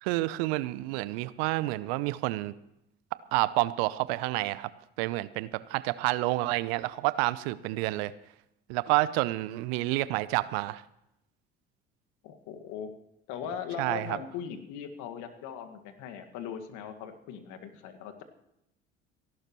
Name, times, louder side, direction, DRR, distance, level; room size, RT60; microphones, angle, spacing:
voice 1, 0.0-2.5 3.3-4.7 5.0-8.1 8.7-10.8 13.8-14.2, right 18 dB, 70° right, 17 dB, 0.8 m, -29 dB
voice 2, 12.2-12.9 13.3-18.1, left 8 dB, 65° left, 7 dB, 1.9 m, -39 dB
29.5 x 12.0 x 3.1 m, 0.82 s
hypercardioid pair, 65°, 32 cm